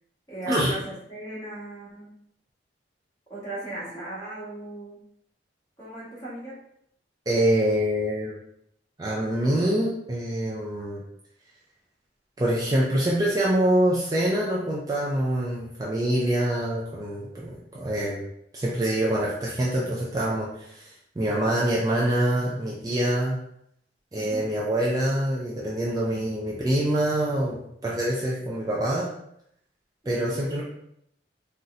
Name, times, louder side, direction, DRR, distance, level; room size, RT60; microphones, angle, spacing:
voice 1, 0.3-2.1 3.3-5.0 5.8-6.6 24.1-24.4 30.0-30.4, right 1 dB, 20° left, -9 dB, 1.3 m, -37 dB
voice 2, 7.3-8.3 9.0-11.0 12.4-18.3 18.5-23.4 24.1-29.1 30.1-30.6, right 1 dB, 20° right, -5 dB, 0.4 m, -25 dB
4.0 x 2.1 x 2.4 m, 0.73 s
head